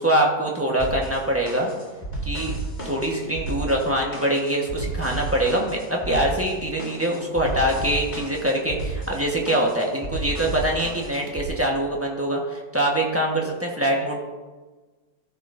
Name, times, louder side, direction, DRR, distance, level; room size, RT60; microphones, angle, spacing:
voice 1, 0.0-1.7 2.2-2.5 2.8-14.2, right 1 dB, 10° right, -2 dB, 1.0 m, -24 dB
sound 1, 0.8-11.5, right 2 dB, 25° left, 2.1 m, -32 dB
14.5 x 6.2 x 2.6 m, 1.3 s
omnidirectional pair, 1.9 m